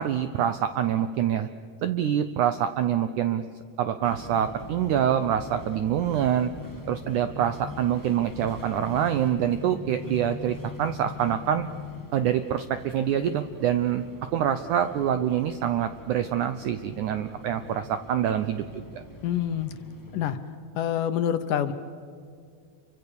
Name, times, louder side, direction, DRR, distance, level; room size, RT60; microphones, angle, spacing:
voice 1, 0.0-1.5 1.8-3.4 3.8-6.5 6.9-11.7 12.1-14.1 14.3-19.0, right 10 dB, 80° right, 10 dB, 1.8 m, -26 dB
Bumpy bus ride from Glasgow city centre to Paisley Scotland, 4.0-20.3, left 3 dB, 25° left, 0.4 m, -42 dB
voice 2, 19.2-19.7 20.1-20.4 20.8-21.7, left 10 dB, 70° left, 9 dB, 2.2 m, -26 dB
28.5 x 24.5 x 6.9 m, 2.2 s
omnidirectional pair, 4.6 m